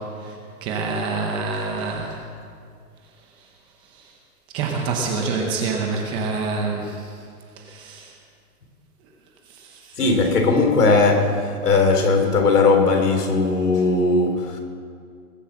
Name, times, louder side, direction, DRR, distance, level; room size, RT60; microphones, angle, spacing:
voice 1, 0.0-2.2 3.4-3.5 3.8-4.1 4.5-7.2 7.6-8.2 9.5-10.0, right 4 dB, 10° right, 0.7 m, -27 dB
voice 2, 10.0-14.6, left 3 dB, 85° left, 3.8 m, -18 dB
20.5 x 8.0 x 7.5 m
hypercardioid pair, 160°, 45 cm